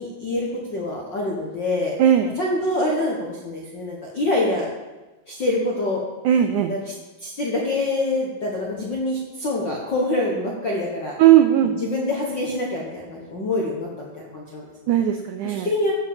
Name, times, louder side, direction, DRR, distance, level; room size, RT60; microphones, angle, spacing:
voice 1, 0.0-1.9 2.4-4.7 5.3-6.0 6.6-6.8 7.2-11.1 11.8-15.0 15.4-15.9, left 2 dB, 60° left, -3 dB, 1.2 m, -25 dB
voice 2, 2.0-2.4 6.2-6.7 11.2-11.7 14.9-15.7, right 11 dB, 90° right, 7 dB, 1.7 m, -17 dB
15.0 x 5.4 x 7.3 m, 1.1 s
omnidirectional pair, 4.3 m